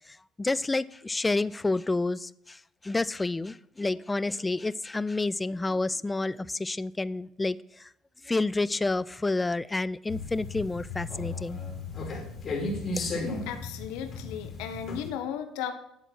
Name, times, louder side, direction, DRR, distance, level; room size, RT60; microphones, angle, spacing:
voice 1, 0.1-7.9 8.2-11.6, left 2 dB, 15° left, 18 dB, 0.3 m, -29 dB
sound 1, 10.1-15.1, left 3 dB, 45° left, 2.4 m, -35 dB
voice 2, 13.5-15.7, left 9 dB, 75° left, 7 dB, 0.9 m, -35 dB
10.0 x 3.7 x 5.9 m, 0.78 s
hypercardioid pair, 70°, 0 cm